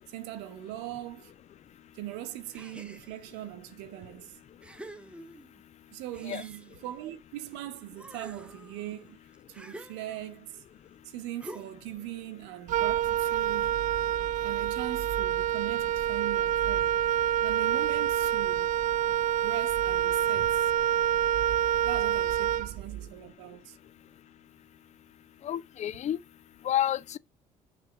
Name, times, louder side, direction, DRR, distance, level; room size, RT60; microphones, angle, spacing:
voice 1, 0.1-1.3 1.9-4.4 5.9-9.2 9.5-10.6 11.0-13.8 14.4-17.0 17.4-18.8 19.4-20.7 21.8-23.8, right 14 dB, 60° right, 0.9 m, -40 dB
sound 1, 2.5-3.4 4.0-4.1 4.6-5.6 6.1-7.6 7.9-10.4 11.4-12.0, right 1 dB, 5° right, 0.9 m, -48 dB
Wind instrument woodwind instrument, 12.7-23.1, right 10 dB, 40° right, 0.4 m, -27 dB
voice 2, 25.4-26.2 26.6-27.2, left 11 dB, 35° left, 0.5 m, -29 dB
7.1 x 5.7 x 5.0 m
figure-of-eight pair, 55°, 20 cm